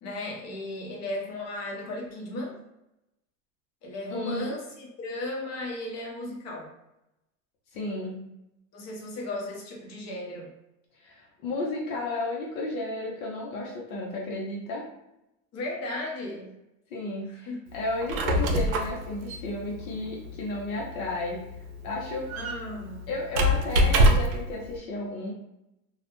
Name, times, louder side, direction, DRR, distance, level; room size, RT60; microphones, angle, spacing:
voice 1, 0.0-2.6 3.8-6.7 8.7-10.5 15.5-16.6 17.3-17.6 22.3-23.1, left 1 dB, 40° left, -1 dB, 0.9 m, -35 dB
voice 2, 4.1-4.6 7.7-8.3 11.0-14.9 16.9-21.4 21.8-22.3 23.1-25.3, left 2 dB, 85° left, -3 dB, 0.8 m, -33 dB
Squeak, 17.9-24.5, equal, 90° right, 0.6 m, -26 dB
2.3 x 2.0 x 2.9 m, 0.89 s
supercardioid pair, 110°, 41 cm